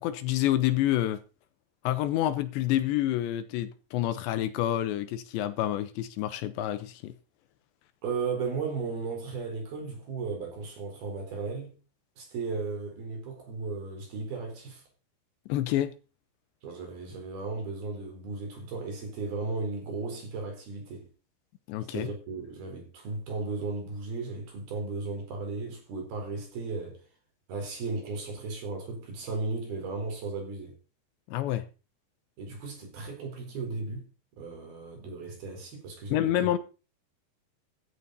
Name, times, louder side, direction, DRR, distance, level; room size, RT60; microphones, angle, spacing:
voice 1, 0.0-1.2 1.8-7.1 15.5-15.9 21.7-22.1 31.3-31.6 36.1-36.6, left 13 dB, 80° left, 3.1 m, -28 dB
voice 2, 8.0-11.7 12.2-14.8 16.6-21.1 21.9-27.0 27.5-30.7 32.4-34.1 34.4-36.5, right 4 dB, 55° right, 6.0 m, -35 dB
15.0 x 11.0 x 4.1 m
omnidirectional pair, 5.2 m